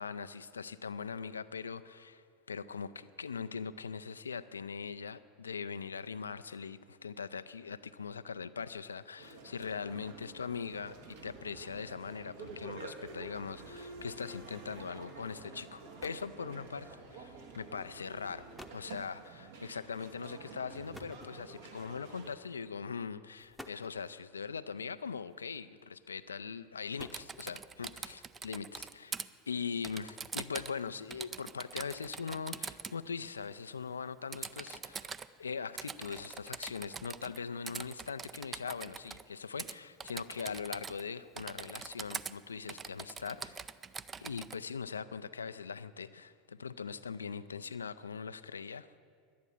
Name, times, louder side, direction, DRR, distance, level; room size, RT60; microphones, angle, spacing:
voice 1, 0.0-2.2 2.5-11.0 11.2-18.5 18.7-43.6 44.2-49.0, left 5 dB, 80° left, 14 dB, 0.4 m, -41 dB
sound 1, 9.2-22.4, right 4 dB, 70° right, 1.6 m, -49 dB
sound 2, 15.8-16.4 17.4-17.6 18.2-18.3 18.6-18.9 20.9-21.8 22.7-22.9 23.4-24.1 25.3-25.8 26.6-27.7, left 1 dB, ahead, 0.8 m, -52 dB
Typing, 27.0-29.3 29.8-30.8 31.1-33.0 34.3-35.3 35.8-37.4 37.7-39.2 39.6-39.7 40.0-41.1 41.4-42.3 42.7-44.6, right 5 dB, 25° right, 0.4 m, -43 dB
11.5 x 9.4 x 8.6 m, 2.1 s
figure-of-eight pair, 80°, 0 cm